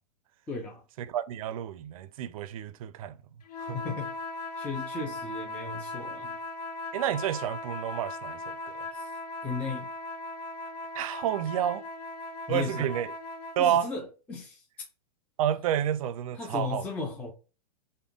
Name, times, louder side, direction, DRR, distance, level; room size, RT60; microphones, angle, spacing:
voice 1, 0.5-0.8 3.7-4.1 4.6-6.4 8.9-9.1 9.4-9.9 12.5-13.0 13.6-14.6 16.3-17.3, left 4 dB, 10° left, 0.4 m, -35 dB
voice 2, 1.1-3.1 3.7-3.8 6.9-8.5 11.0-11.8 12.5-13.1 13.6-13.9 15.4-16.8, right 10 dB, 60° right, 0.4 m, -29 dB
sound 1, 3.5-13.7, left 2 dB, 80° left, 0.6 m, -38 dB
3.5 x 2.2 x 3.5 m
hypercardioid pair, 140°, 20 cm